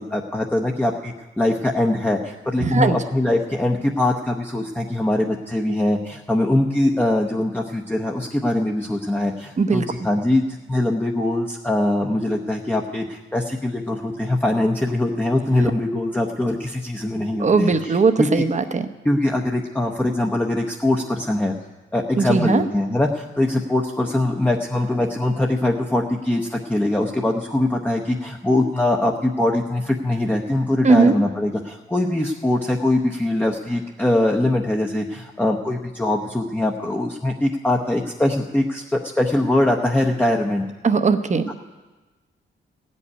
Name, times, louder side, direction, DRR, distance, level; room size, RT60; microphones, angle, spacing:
voice 1, 0.0-10.4 10.7-18.5 19.0-21.5 21.9-40.6, left 1 dB, 10° left, 0 dB, 0.8 m, -22 dB
voice 2, 2.6-3.0 9.6-9.8 17.4-18.9 22.2-22.6 30.8-31.2 40.8-41.6, right 4 dB, 35° right, 9 dB, 0.8 m, -19 dB
16.0 x 5.4 x 9.7 m, 1.2 s
cardioid pair, 105°, 21 cm